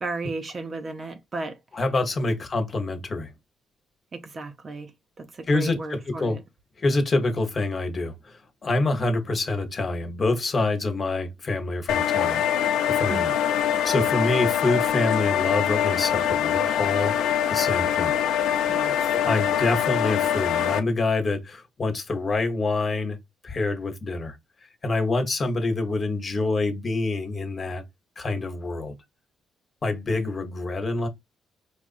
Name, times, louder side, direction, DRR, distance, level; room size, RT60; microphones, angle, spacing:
voice 1, 0.0-1.6 4.1-6.4 13.1-13.3 18.7-19.1, right 3 dB, 40° right, 0.8 m, -34 dB
voice 2, 1.7-3.3 5.5-6.4 6.8-12.4 12.9-13.3 13.8-17.1 17.5-18.1 19.1-23.2 23.4-24.4 24.8-27.8 28.2-28.9 29.8-31.1, left 2 dB, 40° left, 1.2 m, -26 dB
sound 1, 11.9-20.8, left 9 dB, 85° left, 0.6 m, -24 dB
4.8 x 2.5 x 2.5 m
cardioid pair, 90°, 0 cm